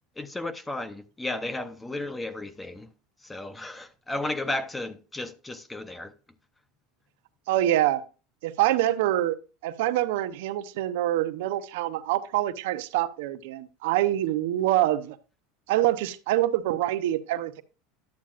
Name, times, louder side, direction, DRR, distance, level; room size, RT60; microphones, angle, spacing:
voice 1, 0.2-2.9 3.2-6.1, left 2 dB, 10° left, 0.8 m, -34 dB
voice 2, 7.5-8.0 8.4-9.4 9.6-15.2 15.7-17.6, right 14 dB, 75° right, 0.7 m, -25 dB
11.5 x 8.5 x 2.5 m
supercardioid pair, 120°, 0 cm